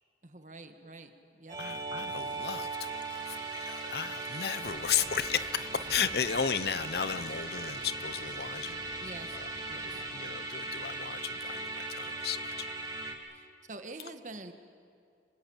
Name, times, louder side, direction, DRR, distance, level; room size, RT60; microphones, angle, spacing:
voice 1, 0.2-1.6 9.0-9.4 9.7-10.0 13.3-14.5, right 2 dB, 45° right, 7 dB, 1.6 m, -46 dB
Musical instrument, 1.5-13.1, right 2 dB, 20° right, 2.2 m, -38 dB
voice 2, 1.6-9.1 9.3-9.5 10.1-12.7, left 7 dB, 65° left, 14 dB, 0.7 m, -34 dB
sound 1, 4.6-10.1, right 2 dB, 70° right, 1.8 m, -51 dB
26.0 x 19.5 x 8.8 m, 2.4 s
head